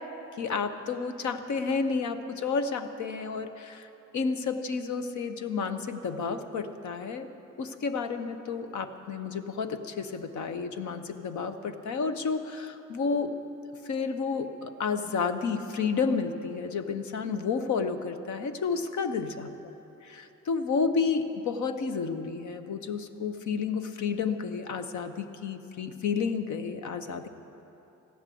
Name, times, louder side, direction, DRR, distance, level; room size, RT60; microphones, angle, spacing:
voice 1, 0.4-7.3 7.6-13.3 13.8-19.7 20.0-27.3, left 5 dB, 70° left, 9 dB, 1.0 m, -31 dB
14.5 x 10.5 x 7.7 m, 2.9 s
cardioid pair, 100°, 31 cm